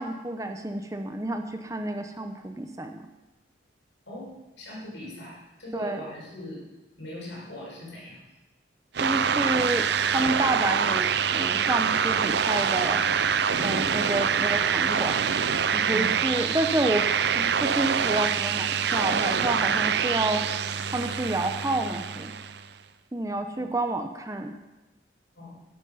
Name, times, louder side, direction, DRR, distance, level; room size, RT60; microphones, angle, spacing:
voice 1, 0.0-3.0 5.7-6.0 9.0-11.1 11.3-13.0 13.6-15.3 15.7-17.1 17.3-20.4 20.9-22.3 23.1-24.5, right 2 dB, 15° right, 6 dB, 0.7 m, -29 dB
voice 2, 4.1-6.6 7.0-8.2 13.5-13.7 15.9-16.1 23.5-23.7 25.3-25.6, left 1 dB, 75° left, -5 dB, 6.0 m, -40 dB
sound 1, 8.9-22.6, right 7 dB, 60° right, 0.5 m, -25 dB
12.5 x 11.0 x 5.5 m, 1.1 s
head